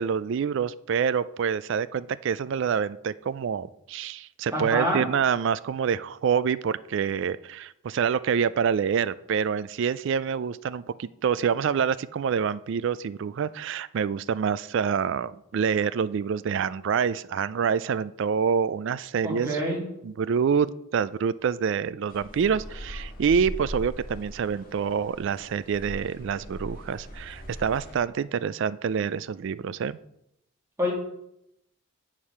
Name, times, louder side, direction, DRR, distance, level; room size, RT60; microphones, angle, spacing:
voice 1, 0.0-19.5 20.0-30.0, right 7 dB, 55° right, 17 dB, 0.3 m, -27 dB
voice 2, 4.5-5.0 19.2-19.8 30.8-30.9, equal, 10° right, -3 dB, 2.3 m, -26 dB
sound 1, 22.1-28.0, equal, 40° left, 1.6 m, -40 dB
8.9 x 4.8 x 5.5 m, 0.79 s
head